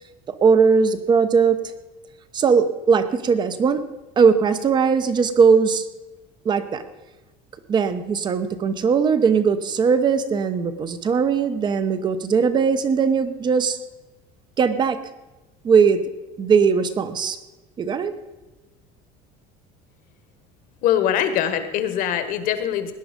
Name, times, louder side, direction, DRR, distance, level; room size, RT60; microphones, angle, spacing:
voice 1, 0.4-1.6 2.3-3.8 4.2-5.8 6.4-6.8 7.7-13.8 14.6-15.0 15.6-16.0 16.4-17.4 17.8-18.1, right 6 dB, 25° right, 11 dB, 0.9 m, -19 dB
voice 2, 20.8-22.9, left 10 dB, 50° left, 10 dB, 1.5 m, -22 dB
18.0 x 11.0 x 5.2 m, 1.1 s
cardioid pair, 170°, 18 cm